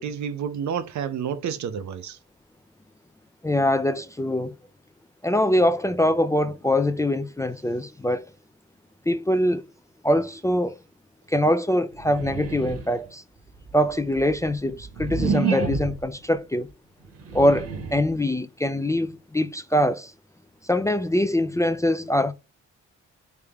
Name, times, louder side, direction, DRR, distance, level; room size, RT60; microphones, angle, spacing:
voice 1, 0.0-2.2, right 8 dB, 75° right, 0.6 m, -30 dB
voice 2, 3.4-4.5 5.2-8.3 9.1-9.6 10.0-10.8 11.3-13.2 13.7-16.7 17.3-20.1 20.6-22.3, left 1 dB, 10° left, 0.3 m, -23 dB
sound 1, 12.0-13.1 13.7-16.1 17.0-18.1, right 6 dB, 55° right, 1.1 m, -29 dB
3.5 x 3.3 x 3.5 m
cardioid pair, 70°, 29 cm